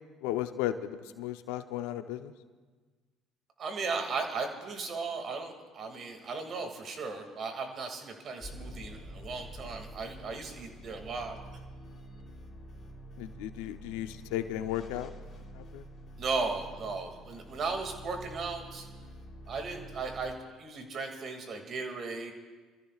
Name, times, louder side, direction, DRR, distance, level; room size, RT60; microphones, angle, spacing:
voice 1, 0.2-2.3 13.2-15.1 15.5-15.9, left 12 dB, 80° left, 10 dB, 0.7 m, -35 dB
voice 2, 3.6-11.4 16.2-18.9 19.5-22.3, right 4 dB, 50° right, 4 dB, 2.4 m, -36 dB
sound 1, 8.4-20.3, right 1 dB, 45° left, 3.4 m, -47 dB
28.0 x 14.0 x 2.5 m, 1.4 s
hypercardioid pair, 65°, 0 cm